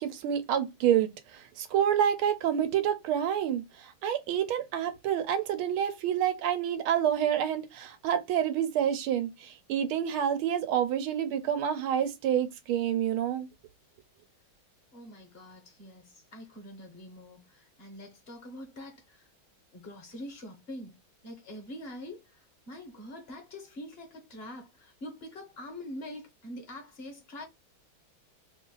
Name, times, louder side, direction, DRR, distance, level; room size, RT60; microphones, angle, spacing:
voice 1, 0.0-13.5, right 9 dB, 85° right, 1.5 m, -28 dB
voice 2, 14.9-19.3 19.7-21.0 21.2-27.4, left 1 dB, 40° left, 1.0 m, -44 dB
3.5 x 2.5 x 3.8 m
omnidirectional pair, 2.2 m